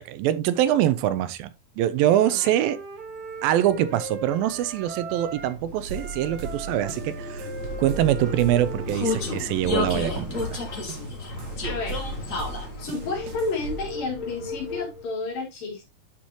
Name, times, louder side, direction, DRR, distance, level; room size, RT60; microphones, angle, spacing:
voice 1, 0.0-1.5 1.8-2.8 3.4-7.5 7.8-10.6, right 12 dB, 85° right, 2.4 m, -24 dB
Wind instrument woodwind instrument, 2.0-5.6 5.9-9.8, right 3 dB, 40° right, 1.5 m, -40 dB
Vehicle, 3.3-15.1, left 3 dB, 45° left, 1.0 m, -33 dB
sound 1, 5.9-13.9, right 4 dB, 60° right, 2.0 m, -38 dB
voice 2, 11.6-12.0 12.8-15.9, left 3 dB, 70° left, 4.6 m, -31 dB
11.5 x 4.7 x 3.0 m
omnidirectional pair, 4.1 m